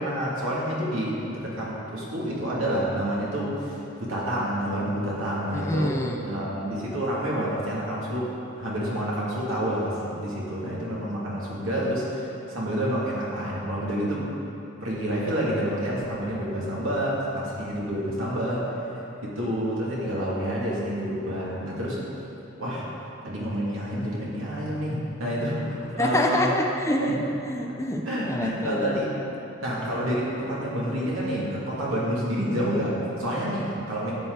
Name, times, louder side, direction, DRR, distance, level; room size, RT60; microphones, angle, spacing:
voice 1, 0.0-6.0 6.2-8.3 8.6-14.3 14.8-18.6 19.2-22.0 22.6-22.9 23.2-26.5 27.0-27.2 28.1-29.1 29.6-34.1, equal, 75° right, -6 dB, 2.6 m, -28 dB
voice 2, 5.5-6.3 26.0-27.2 27.4-29.0, left 1 dB, 15° left, 2 dB, 0.5 m, -27 dB
12.0 x 8.3 x 4.0 m, 2.9 s
head